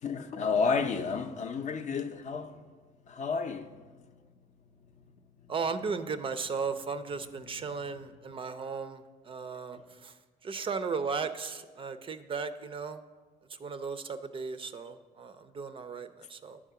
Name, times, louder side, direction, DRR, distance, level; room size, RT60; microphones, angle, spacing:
voice 1, 0.0-2.6 3.0-5.5 7.4-8.1, left 5 dB, 45° left, 0.5 m, -33 dB
voice 2, 5.5-10.1 10.4-13.0 13.6-16.6, right 5 dB, 30° right, 0.4 m, -36 dB
10.5 x 3.6 x 6.7 m
cardioid pair, 110°, 17 cm